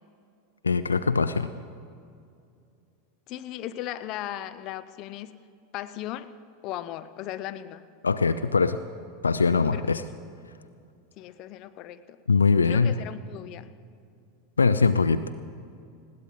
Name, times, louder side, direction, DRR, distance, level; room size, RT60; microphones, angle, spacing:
voice 1, 0.6-1.5 8.0-8.8 9.2-10.0 12.3-13.0 14.6-15.2, left 4 dB, 85° left, 13 dB, 0.4 m, -22 dB
voice 2, 3.3-5.4 5.7-6.3 6.6-7.9 9.7-10.0 11.2-12.2 12.6-13.7, left 12 dB, 45° left, 12 dB, 0.7 m, -37 dB
20.0 x 17.0 x 3.8 m, 2.4 s
figure-of-eight pair, 85°, 0 cm